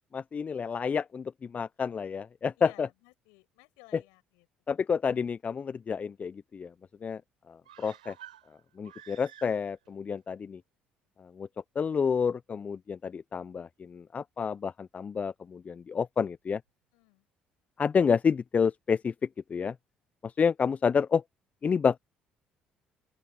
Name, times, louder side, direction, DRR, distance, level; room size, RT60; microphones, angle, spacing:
voice 1, 0.1-2.9 3.9-4.0 4.7-6.7 7.0-7.2 7.5-8.1 8.8-10.6 11.4-11.5 11.7-16.6 17.8-19.1 19.5-19.7 20.2-21.2 21.6-22.0, left 6 dB, 40° left, 1.0 m, -29 dB
voice 2, 2.6-4.5 16.9-17.2, left 33 dB, 70° left, 6.7 m, -56 dB
sound 1, 7.6-9.9 10.2-10.3, right 11 dB, 85° right, 6.8 m, -51 dB
open air
hypercardioid pair, 50°, 4 cm